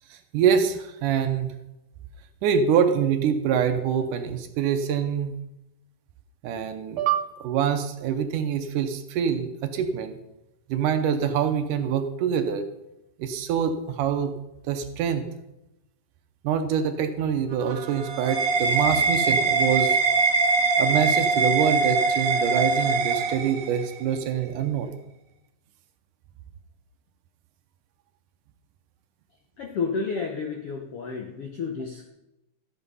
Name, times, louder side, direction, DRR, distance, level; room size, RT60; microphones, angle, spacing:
voice 1, 0.1-1.5 2.4-5.4 6.4-10.2 10.7-12.7 13.2-14.3 14.7-15.3 16.4-20.0 20.8-24.9, right 7 dB, 75° right, 7 dB, 2.2 m, -25 dB
sound 1, 17.5-24.0, right 4 dB, 55° right, 1.7 m, -23 dB
voice 2, 29.6-32.1, left 5 dB, 70° left, 2 dB, 1.4 m, -31 dB
14.0 x 7.9 x 5.5 m, 0.92 s
omnidirectional pair, 4.0 m